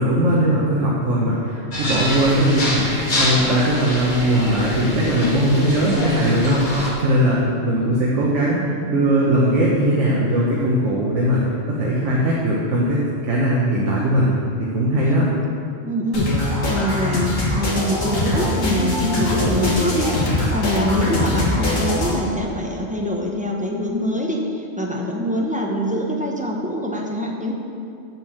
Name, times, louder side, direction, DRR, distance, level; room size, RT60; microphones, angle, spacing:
voice 1, 0.0-2.8 3.1-8.6 8.9-11.4 11.7-14.3 14.6-15.2, right 1 dB, 70° right, -5 dB, 1.5 m, -19 dB
sound 1, 1.7-6.9, left 1 dB, 40° left, 1.7 m, -26 dB
voice 2, 15.8-16.3 16.7-27.5, equal, 5° right, -1 dB, 0.9 m, -24 dB
sound 2, 16.1-22.1, left 2 dB, 80° left, 2.0 m, -22 dB
7.6 x 6.3 x 7.8 m, 2.7 s
omnidirectional pair, 1.3 m